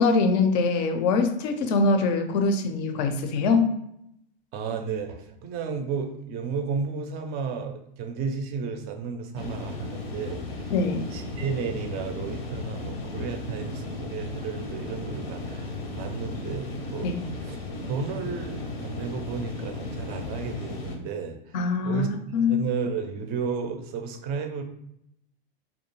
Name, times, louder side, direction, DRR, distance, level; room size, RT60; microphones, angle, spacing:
voice 1, 0.0-3.7 10.7-11.1 17.0-17.1 21.5-22.1 22.3-22.6, left 4 dB, 50° left, 6 dB, 0.4 m, -23 dB
voice 2, 4.5-10.7 11.1-17.1 17.4-17.6 17.9-22.1 22.5-24.6, right 5 dB, 35° right, 5 dB, 0.4 m, -33 dB
sound 1, 9.3-21.0, left 2 dB, 85° left, 0.6 m, -35 dB
2.4 x 2.2 x 2.9 m, 0.76 s
hypercardioid pair, 105°, 29 cm